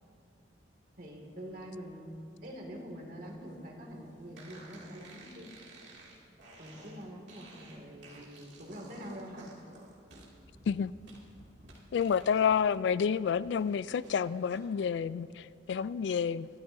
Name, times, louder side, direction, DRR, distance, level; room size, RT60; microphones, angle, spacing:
voice 1, 1.0-5.5 6.6-9.5, equal, 50° right, 2.1 m, -45 dB
sound 1, 4.4-12.7 13.0-14.6, right 2 dB, 80° right, 2.3 m, -54 dB
voice 2, 11.9-16.5, left 7 dB, 75° left, 0.3 m, -29 dB
23.0 x 12.5 x 2.7 m
head